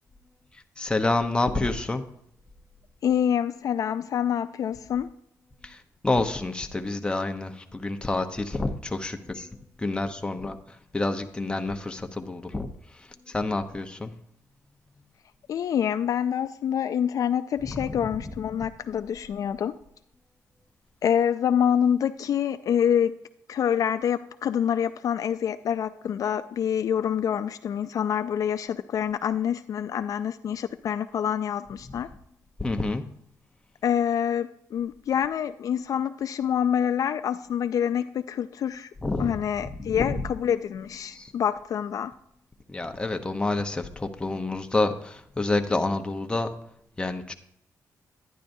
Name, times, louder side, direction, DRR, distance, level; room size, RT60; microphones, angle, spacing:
voice 1, 0.5-2.1 5.6-14.3 17.6-18.3 32.6-33.1 39.0-39.4 39.7-40.2 41.1-41.3 42.7-46.7 47.0-47.3, left 2 dB, 15° left, 6 dB, 0.8 m, -29 dB
voice 2, 3.0-5.1 15.5-19.7 21.0-23.2 23.5-32.1 33.8-38.9 39.2-42.1, left 9 dB, 65° left, 10 dB, 0.3 m, -26 dB
11.0 x 9.9 x 2.7 m, 0.74 s
cardioid pair, 90°, 6 cm